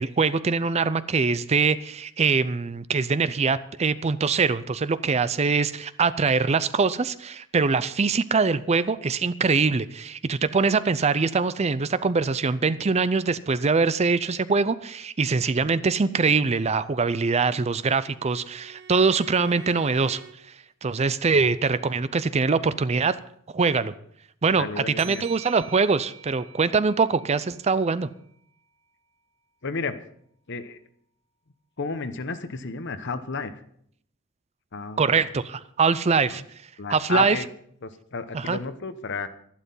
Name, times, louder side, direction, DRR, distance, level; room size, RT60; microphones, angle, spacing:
voice 1, 0.0-20.2 20.8-23.2 23.5-23.9 24.4-28.1 35.0-36.4 36.9-37.4 38.3-38.6, right 4 dB, 30° right, 15 dB, 0.5 m, -23 dB
Bowed string instrument, 16.8-20.4, right 5 dB, 60° right, 1.1 m, -47 dB
voice 2, 24.5-25.2 29.6-30.0 30.5-30.8 31.8-33.6 34.7-35.2 36.3-36.4 36.8-37.5 37.8-39.3, left 4 dB, 60° left, 11 dB, 1.0 m, -32 dB
sound 1, 25.0-28.3, right 8 dB, 75° right, 1.7 m, -45 dB
12.5 x 11.5 x 5.5 m, 0.66 s
head